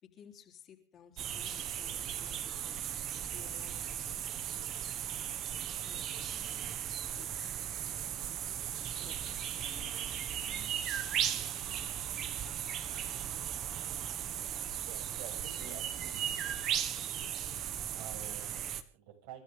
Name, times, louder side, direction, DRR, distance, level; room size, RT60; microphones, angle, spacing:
voice 1, 0.0-2.9 3.3-4.2 5.9-6.1 7.1-7.6 9.0-10.1 10.4-10.9 15.6-15.8, left 9 dB, 40° left, 3.5 m, -57 dB
sound 1, 1.2-18.8, right 10 dB, 45° right, 1.6 m, -37 dB
voice 2, 14.8-16.6 17.9-19.4, right 9 dB, 70° right, 7.1 m, -50 dB
30.0 x 12.5 x 3.6 m
supercardioid pair, 110°, 0 cm